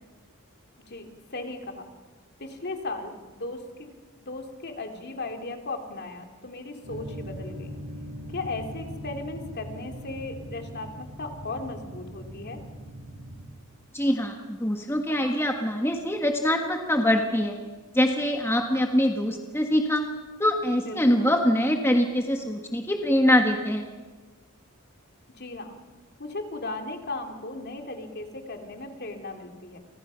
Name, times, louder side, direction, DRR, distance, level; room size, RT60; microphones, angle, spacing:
voice 1, 0.9-1.9 2.4-3.9 4.2-7.8 8.3-12.6 20.7-21.4 25.3-25.8 26.2-29.8, left 2 dB, 50° left, 4 dB, 3.0 m, -37 dB
sound 1, 6.8-13.5, equal, 55° right, 7.3 m, -40 dB
voice 2, 13.9-17.5 17.9-20.0 20.4-23.9, left 1 dB, 10° left, 3 dB, 1.5 m, -24 dB
30.0 x 25.5 x 5.8 m, 1.4 s
head